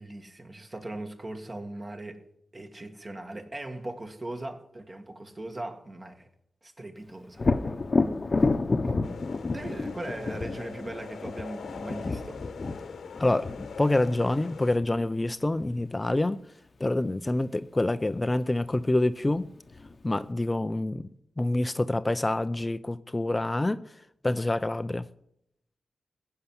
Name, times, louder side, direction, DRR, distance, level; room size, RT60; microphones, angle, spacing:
voice 1, 0.0-2.2 2.5-6.3 6.6-7.4 9.5-12.4, right 2 dB, 35° right, 2.1 m, -39 dB
Thunder, 7.4-15.1 18.7-18.8 19.3-20.2, left 3 dB, 45° left, 1.0 m, -30 dB
sound 1, 9.0-14.8, left 5 dB, 85° left, 1.2 m, -42 dB
voice 2, 13.2-13.5 13.8-16.4 16.8-19.5 20.0-21.1 21.4-23.8 24.2-25.0, left 2 dB, 25° left, 0.6 m, -26 dB
16.0 x 5.7 x 9.6 m
cardioid pair, 60°, 0 cm